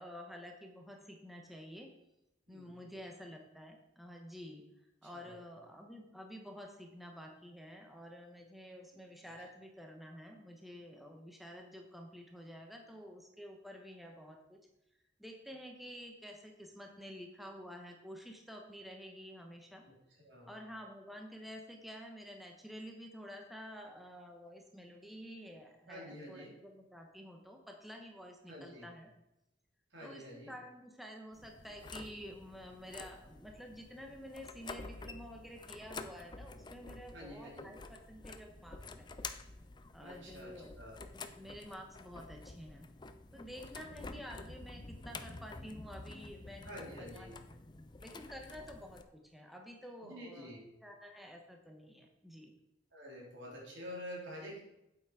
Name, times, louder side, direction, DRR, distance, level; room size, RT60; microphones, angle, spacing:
voice 1, 0.0-1.9 2.5-4.6 5.0-14.6 15.2-19.8 20.5-29.1 30.0-39.1 39.9-40.7 41.0-42.9 43.3-46.7 47.0-47.4 47.8-50.5 50.8-52.5, equal, ahead, 2 dB, 1.0 m, -50 dB
voice 2, 2.5-2.9 5.1-5.4 19.9-20.0 20.2-20.5 25.9-26.5 28.5-28.9 29.9-30.5 37.1-37.7 40.0-41.0 43.9-44.1 46.6-47.4 50.0-50.6 52.9-54.6, equal, 80° right, -3 dB, 3.8 m, -48 dB
sound 1, 31.3-49.0, left 3 dB, 25° left, 0.5 m, -49 dB
8.4 x 8.1 x 4.9 m, 0.87 s
head